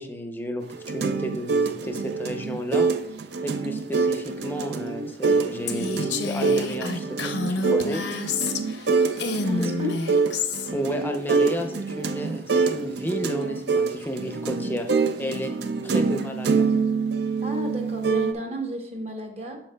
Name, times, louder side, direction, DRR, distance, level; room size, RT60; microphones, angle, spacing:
voice 1, 0.0-2.9 3.4-8.0 10.7-15.5 15.8-16.6, equal, 10° left, 5 dB, 0.5 m, -32 dB
sound 1, 0.6-18.3, right 4 dB, 60° right, 0.4 m, -25 dB
Female speech woman speaking, 5.7-8.9 9.2-10.7, left 4 dB, 75° left, 0.6 m, -29 dB
voice 2, 9.4-10.0 17.4-19.6, left 1 dB, 35° right, 3 dB, 0.9 m, -32 dB
11.5 x 4.5 x 2.2 m, 0.79 s
head